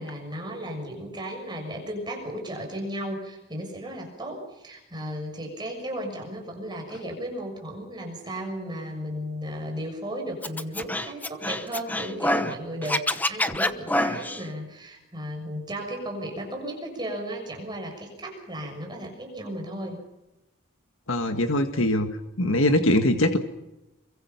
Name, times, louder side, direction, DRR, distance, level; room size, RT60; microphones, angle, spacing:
voice 1, 0.0-20.0, equal, 20° right, 1 dB, 6.7 m, -35 dB
Scratching (performance technique), 10.4-12.5 12.8-14.4, left 1 dB, 10° left, 0.9 m, -26 dB
voice 2, 21.1-22.1 22.4-23.4, left 1 dB, 70° left, 6 dB, 1.8 m, -22 dB
29.5 x 23.5 x 5.9 m, 0.97 s
head